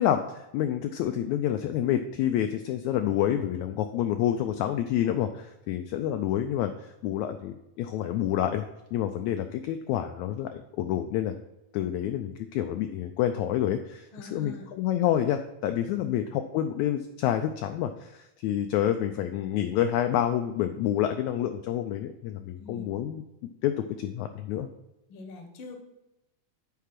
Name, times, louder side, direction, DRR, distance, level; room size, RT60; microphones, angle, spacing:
voice 1, 0.0-8.6 8.9-11.3 11.7-23.2 23.6-24.7, left 11 dB, 85° left, 7 dB, 1.6 m, -28 dB
voice 2, 14.1-14.7 15.9-16.2 22.6-22.9 25.1-25.8, left 2 dB, 60° left, 5 dB, 1.4 m, -44 dB
8.3 x 4.7 x 5.8 m, 0.91 s
omnidirectional pair, 3.8 m